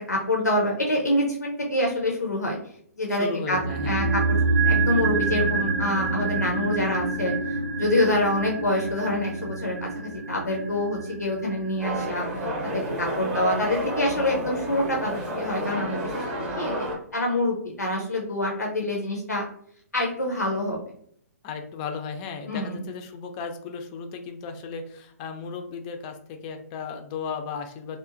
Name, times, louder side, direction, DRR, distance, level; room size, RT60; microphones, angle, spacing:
voice 1, 0.0-2.6 3.0-4.2 4.6-12.3 12.6-16.2 16.6-19.5 19.9-20.9 22.5-22.8, left 1 dB, 85° left, 0 dB, 0.5 m, -26 dB
voice 2, 3.1-4.0 21.4-28.0, left 5 dB, 25° left, 5 dB, 0.3 m, -35 dB
sound 1, 3.5-13.8 14.0-14.1, right 3 dB, 75° right, 0.4 m, -27 dB
sound 2, 11.8-17.0, equal, 20° right, 0.6 m, -30 dB
2.8 x 2.0 x 2.4 m, 0.64 s
figure-of-eight pair, 125°, 9 cm